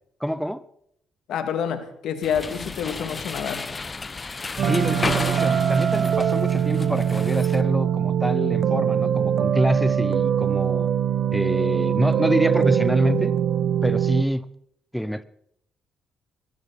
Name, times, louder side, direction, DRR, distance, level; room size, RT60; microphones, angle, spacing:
voice 1, 0.2-0.6 4.6-10.9 11.3-13.4 13.8-14.4 14.9-15.2, equal, ahead, 0.7 m, -26 dB
voice 2, 1.3-3.7, left 8 dB, 75° left, 2.3 m, -28 dB
sound 1, 2.2-7.6, left 3 dB, 30° left, 1.3 m, -33 dB
sound 2, 4.6-14.2, right 8 dB, 60° right, 1.0 m, -22 dB
22.5 x 14.0 x 4.2 m
cardioid pair, 90°, 0 cm